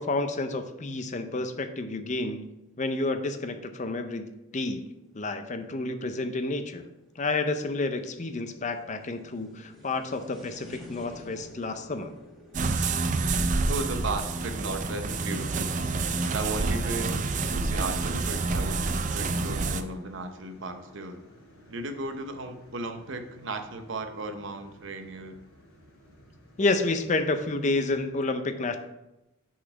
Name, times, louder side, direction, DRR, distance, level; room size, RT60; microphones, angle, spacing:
voice 1, 0.0-2.5 2.8-4.3 4.5-4.8 5.1-6.9 7.2-12.1 26.6-28.8, left 2 dB, 35° left, 8 dB, 0.5 m, -30 dB
sound 1, 1.9-13.7, left 1 dB, ahead, 1.4 m, -52 dB
sound 2, 12.5-19.8, right 3 dB, 35° right, 0.4 m, -28 dB
sound 3, 13.5-28.1, equal, 85° left, 2.7 m, -54 dB
voice 2, 13.7-15.9 16.3-21.2 21.7-25.4, right 2 dB, 55° right, 6 dB, 0.7 m, -35 dB
6.2 x 4.1 x 5.8 m, 0.93 s
head